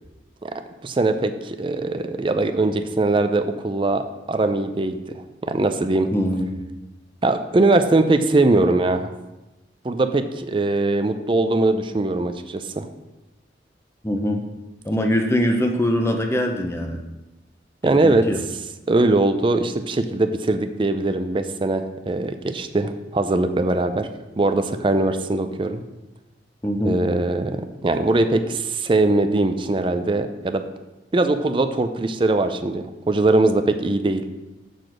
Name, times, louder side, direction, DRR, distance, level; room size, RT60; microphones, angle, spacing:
voice 1, 0.4-6.1 7.2-9.1 9.8-12.9 17.8-18.2 18.9-24.1 24.4-25.8 26.8-30.6 31.1-34.2, right 2 dB, 30° right, 9 dB, 0.4 m, -21 dB
voice 2, 6.1-6.6 14.0-14.4 14.8-17.0 18.0-18.4 26.6-27.0, equal, 15° left, 3 dB, 0.7 m, -22 dB
6.7 x 4.0 x 6.1 m, 1.0 s
head